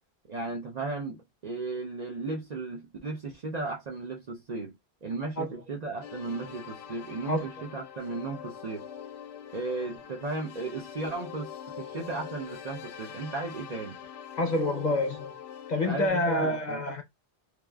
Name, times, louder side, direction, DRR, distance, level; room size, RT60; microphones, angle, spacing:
voice 1, 0.3-4.7 5.0-8.9 9.5-14.0 15.8-16.8, right 3 dB, 50° right, 0.6 m, -35 dB
sound 1, 6.0-16.1, left 9 dB, 80° left, 0.9 m, -44 dB
voice 2, 14.4-15.3 15.7-17.0, left 1 dB, 50° left, 0.7 m, -27 dB
3.2 x 2.4 x 2.2 m
omnidirectional pair, 1.1 m